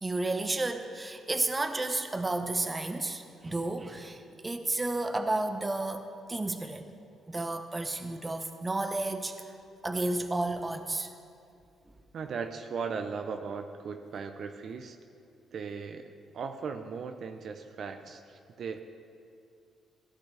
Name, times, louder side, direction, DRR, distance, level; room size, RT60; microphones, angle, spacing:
voice 1, 0.0-6.9 7.3-9.4 9.8-11.1, right 2 dB, 20° right, 7 dB, 0.9 m, -32 dB
voice 2, 12.1-15.0 15.5-16.1 16.3-18.8, right 5 dB, 60° right, 6 dB, 0.6 m, -37 dB
16.0 x 11.5 x 3.4 m, 2.4 s
cardioid pair, 90°, 0 cm